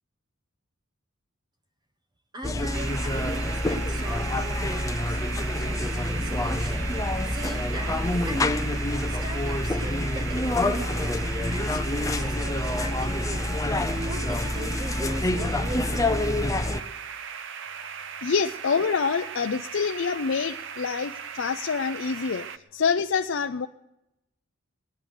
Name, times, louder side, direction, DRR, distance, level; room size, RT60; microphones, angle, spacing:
voice 1, 2.3-5.2 5.5-8.7 9.1-11.2 11.5-13.6 14.0-16.2, right 1 dB, 20° right, 6 dB, 0.7 m, -39 dB
sound 1, 2.4-16.8, left 1 dB, 15° left, 0.6 m, -27 dB
sound 2, 2.7-22.6, right 7 dB, 60° right, 0.6 m, -38 dB
voice 2, 17.9-23.7, left 5 dB, 65° left, 6 dB, 0.5 m, -27 dB
20.0 x 10.5 x 6.5 m, 0.91 s
head